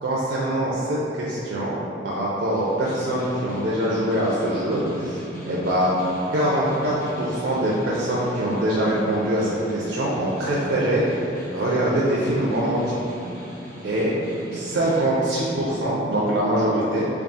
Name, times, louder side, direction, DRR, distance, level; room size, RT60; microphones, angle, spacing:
voice 1, 0.0-5.2 5.5-5.9 6.3-11.1 11.5-13.0 13.8-14.1 14.5-17.1, right 1 dB, 75° right, -6 dB, 0.4 m, -23 dB
Snare drum, 2.4-15.1, equal, 50° left, 0.7 m, -39 dB
3.5 x 2.3 x 3.9 m, 2.8 s
head